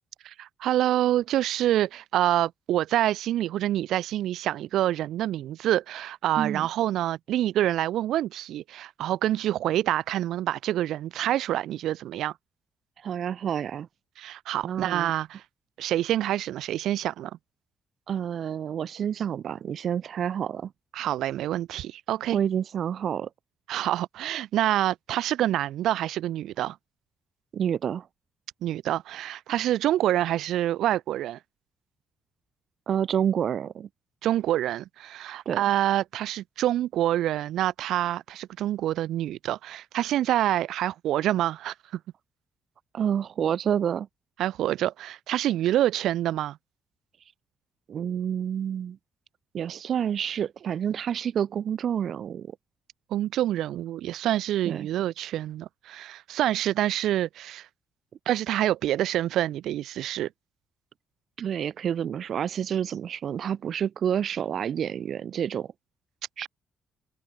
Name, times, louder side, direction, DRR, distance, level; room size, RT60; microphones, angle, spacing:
voice 1, 0.2-12.3 14.2-15.4 15.8-17.3 20.9-22.4 23.7-26.8 28.6-31.4 34.2-42.0 44.4-46.6 53.1-57.7 58.3-60.3, right 13 dB, 80° right, 5.8 m, -27 dB
voice 2, 13.0-13.9 14.6-15.1 18.1-20.7 22.3-23.3 27.5-28.1 32.9-33.9 35.5-35.6 42.9-44.1 47.9-49.0 49.5-52.5 54.7-54.9 61.4-65.7 66.4-66.5, right 8 dB, 60° right, 5.5 m, -28 dB
cardioid pair, 90°, 0 cm